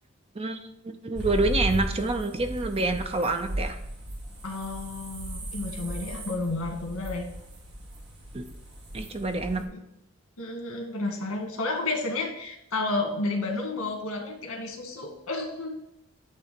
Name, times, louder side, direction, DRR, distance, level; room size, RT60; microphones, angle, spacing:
voice 1, 0.3-3.8 8.3-8.5 8.9-9.6, right 2 dB, 25° right, 7 dB, 0.6 m, -27 dB
sound 1, 1.1-9.6, right 1 dB, 50° right, 1.8 m, -36 dB
voice 2, 4.4-7.3 9.7-9.8 10.4-15.8, left 2 dB, 85° left, 2 dB, 1.9 m, -31 dB
8.9 x 3.4 x 6.7 m, 0.84 s
head